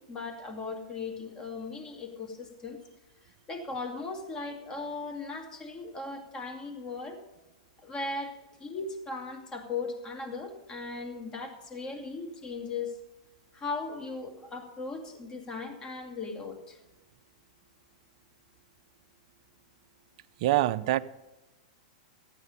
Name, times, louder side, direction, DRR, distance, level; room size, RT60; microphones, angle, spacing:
voice 1, 0.0-2.8 3.5-7.2 7.8-13.0 13.5-16.8, left 3 dB, 20° left, 2.3 m, -38 dB
voice 2, 20.4-21.0, right 15 dB, 55° right, 0.6 m, -24 dB
14.0 x 9.1 x 5.5 m
hypercardioid pair, 115°, 4 cm